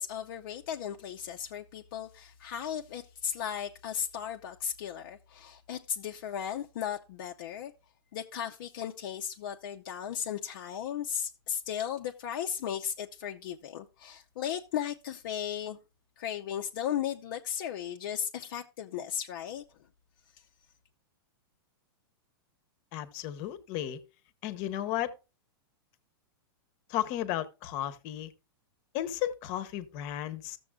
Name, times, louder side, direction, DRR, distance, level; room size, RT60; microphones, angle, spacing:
voice 1, 0.0-7.7 8.1-15.8 16.2-19.6, left 9 dB, 60° left, 0.6 m, -36 dB
voice 2, 22.9-24.0 24.4-25.1 26.9-28.3 28.9-30.6, left 12 dB, 40° left, 0.9 m, -34 dB
14.5 x 7.0 x 2.3 m
supercardioid pair, 150°, 13 cm